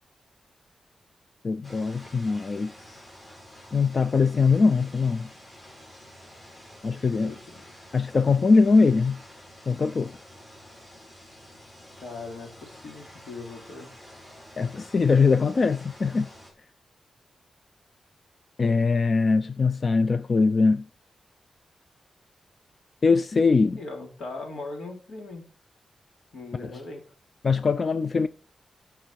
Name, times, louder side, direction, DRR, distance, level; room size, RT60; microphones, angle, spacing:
voice 1, 1.4-3.0 3.7-5.3 6.8-7.3 7.9-9.2 9.7-10.2 14.6-16.3 18.6-20.9 23.0-23.8 26.6-26.8 27.4-28.3, left 4 dB, 45° left, 0.4 m, -22 dB
sound 1, 1.6-16.5, equal, 30° left, 6.2 m, -49 dB
voice 2, 6.8-7.7 12.0-13.9 23.7-25.4 26.3-27.0, left 3 dB, 90° left, 3.0 m, -40 dB
11.5 x 5.8 x 4.7 m
wide cardioid pair, 110°, 0 cm